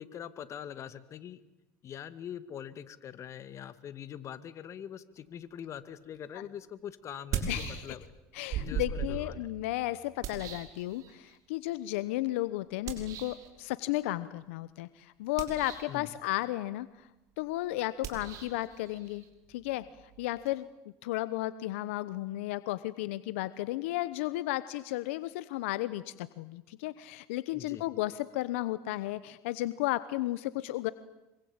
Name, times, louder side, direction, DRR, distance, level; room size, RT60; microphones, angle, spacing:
voice 1, 0.0-1.4 1.8-8.0 8.6-9.5 15.9-16.1 27.5-27.8, left 9 dB, 45° left, 13 dB, 2.1 m, -43 dB
sound 1, 6.1-6.2 7.1-8.2 8.5-11.4 12.9-13.5 15.2-16.0 18.0-20.5, right 7 dB, 60° right, 5.4 m, -39 dB
voice 2, 7.5-7.9 8.3-17.1 17.4-19.2 19.5-19.9 20.2-20.7 21.0-30.9, left 16 dB, 85° left, 16 dB, 0.9 m, -34 dB
26.0 x 24.0 x 8.8 m, 0.95 s
supercardioid pair, 90°, 7 cm